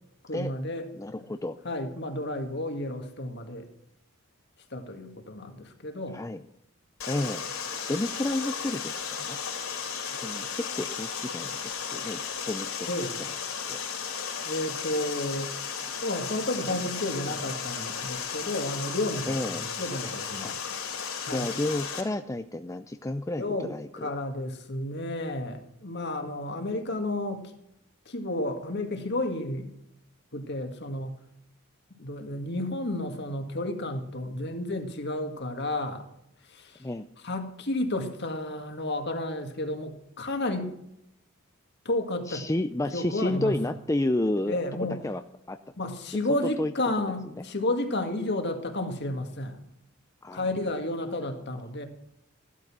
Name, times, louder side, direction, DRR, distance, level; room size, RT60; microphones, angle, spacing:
voice 1, 0.3-0.9 1.6-3.7 4.7-6.2 12.9-13.1 14.4-15.5 16.0-20.6 21.2-21.5 23.3-27.5 28.1-29.7 30.3-31.2 32.0-36.1 36.4-36.9 37.2-40.7 41.9-42.5 42.9-43.6 44.5-45.0 45.8-49.6 50.3-51.8, left 1 dB, 50° left, 6 dB, 2.0 m, -32 dB
voice 2, 1.0-1.6 6.1-6.4 7.1-7.5 7.9-9.4 10.2-12.9 13.7-13.8 17.3-17.4 19.3-19.7 20.4-20.5 21.3-24.1 36.8-37.1 42.3-44.6 45.0-45.2 45.5-45.6 46.6-46.7 50.2-50.5, left 1 dB, 15° left, 8 dB, 0.4 m, -31 dB
Water, 7.0-22.0, left 6 dB, 75° left, 3.7 m, -35 dB
15.0 x 12.0 x 6.1 m, 0.79 s
head